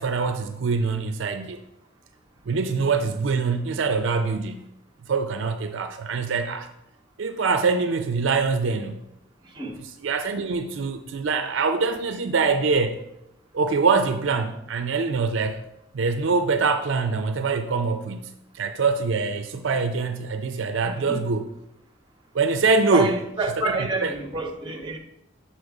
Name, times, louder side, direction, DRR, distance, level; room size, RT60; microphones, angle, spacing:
voice 1, 0.0-1.6 2.5-4.7 5.1-6.7 7.2-9.0 10.0-13.0 13.5-15.6 15.9-21.5 22.3-23.2 23.6-24.2, right 4 dB, 65° right, 8 dB, 0.5 m, -24 dB
voice 2, 20.8-21.3 22.9-25.0, right 2 dB, 20° right, 3 dB, 0.9 m, -28 dB
6.6 x 4.3 x 6.0 m, 0.84 s
head